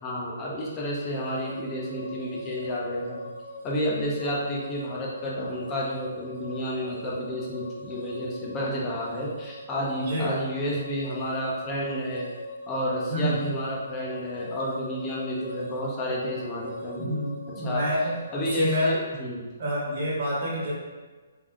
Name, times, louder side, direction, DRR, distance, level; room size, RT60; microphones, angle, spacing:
voice 1, 0.0-3.3 3.6-12.3 12.7-17.2 17.6-17.8 18.3-19.4, equal, 15° left, -4 dB, 0.6 m, -30 dB
sound 1, 1.1-18.9, left 1 dB, 60° left, 1.3 m, -41 dB
voice 2, 10.0-10.4 13.1-13.3 16.9-18.9 19.6-20.7, equal, 40° right, -5 dB, 1.2 m, -28 dB
3.5 x 2.7 x 3.6 m, 1.3 s
hypercardioid pair, 175°, 0 cm